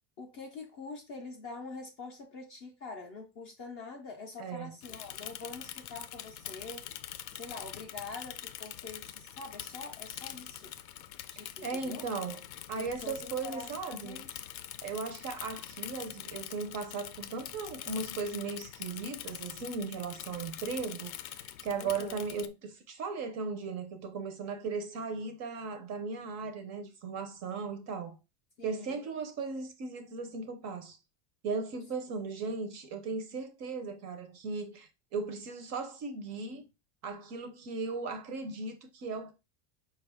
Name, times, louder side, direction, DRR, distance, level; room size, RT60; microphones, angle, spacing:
voice 1, 0.2-10.8 11.3-12.0 12.7-14.4 21.8-22.2 28.6-29.0, left 3 dB, 30° left, 0.3 m, -45 dB
voice 2, 4.4-4.8 11.6-12.4 12.7-14.2 14.8-28.2 28.6-31.0 31.4-36.7 37.0-39.3, right 4 dB, 35° right, 0.4 m, -37 dB
Bicycle / Mechanisms, 4.8-22.5, left 12 dB, 90° left, 0.6 m, -44 dB
4.8 x 2.3 x 3.3 m
cardioid pair, 155°, 50 cm